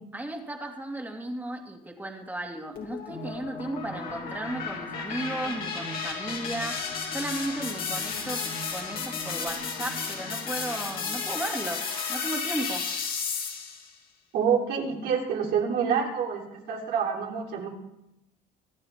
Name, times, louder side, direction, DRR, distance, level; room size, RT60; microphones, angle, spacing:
voice 1, 0.1-6.8 7.1-8.5 8.7-12.9, right 1 dB, 10° right, 2 dB, 2.3 m, -35 dB
sound 1, 2.8-13.9, left 5 dB, 60° left, 3.0 m, -33 dB
voice 2, 14.3-16.4 16.7-17.7, right 7 dB, 80° right, -1 dB, 3.6 m, -27 dB
24.0 x 9.7 x 3.6 m, 0.84 s
cardioid pair, 110°, 17 cm